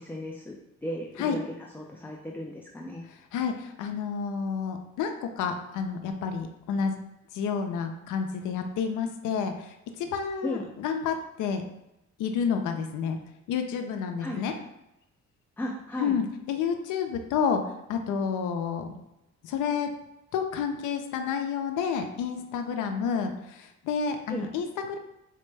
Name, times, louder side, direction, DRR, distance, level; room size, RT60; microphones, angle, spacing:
voice 1, 0.0-1.4 1.7-3.0 10.4-10.7 14.2-14.4 15.6-16.2 24.3-24.5, left 1 dB, 5° left, -1 dB, 0.4 m, -35 dB
voice 2, 3.1-6.9 7.3-11.6 12.2-13.2 13.5-14.5 16.0-18.9 19.4-19.9 20.3-25.0, left 6 dB, 80° left, 6 dB, 0.5 m, -30 dB
4.2 x 2.1 x 3.2 m, 0.90 s
cardioid pair, 90°, 30 cm